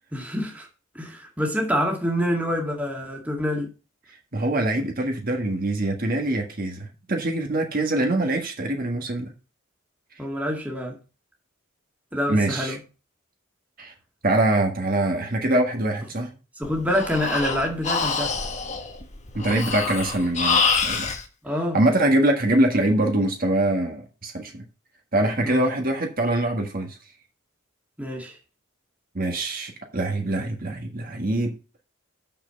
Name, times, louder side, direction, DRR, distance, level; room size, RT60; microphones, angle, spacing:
voice 1, 0.1-0.7 1.0-3.7 10.2-11.0 12.1-12.8 16.6-18.3 21.4-21.8 25.4-25.6 28.0-28.4, equal, 5° right, 1.9 m, -26 dB
voice 2, 4.3-9.3 12.3-12.8 13.8-13.9 14.2-16.3 19.3-21.1 21.7-24.6 25.1-27.0 29.1-31.5, right 1 dB, 45° right, 1.6 m, -24 dB
Breathing, 16.6-21.2, left 4 dB, 35° left, 1.3 m, -26 dB
6.8 x 5.8 x 6.8 m
head